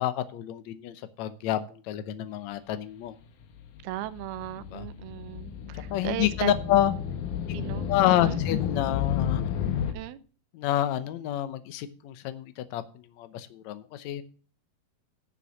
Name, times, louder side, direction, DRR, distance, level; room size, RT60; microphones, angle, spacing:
voice 1, 0.0-3.1 4.6-4.9 5.9-6.9 7.9-9.5 10.5-14.2, left 12 dB, 85° left, 1.6 m, -28 dB
sound 1, 3.4-9.9, left 8 dB, 65° left, 2.4 m, -32 dB
voice 2, 3.8-6.5 7.5-8.4 9.9-10.2, right 14 dB, 90° right, 2.7 m, -36 dB
11.5 x 7.1 x 6.2 m
omnidirectional pair, 4.4 m